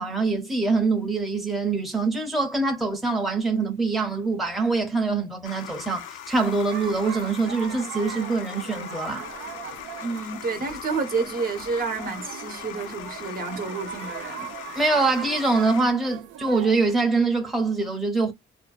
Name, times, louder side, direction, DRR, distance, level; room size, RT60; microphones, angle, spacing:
voice 1, 0.0-9.2 14.8-18.3, right 3 dB, ahead, 0.6 m, -24 dB
sound 1, 5.4-15.9, left 11 dB, 90° left, 0.4 m, -40 dB
sound 2, 6.7-16.9, right 10 dB, 70° right, 0.4 m, -40 dB
voice 2, 10.0-14.5, right 4 dB, 45° right, 0.8 m, -29 dB
2.6 x 2.1 x 2.2 m
cardioid pair, 90°, 20 cm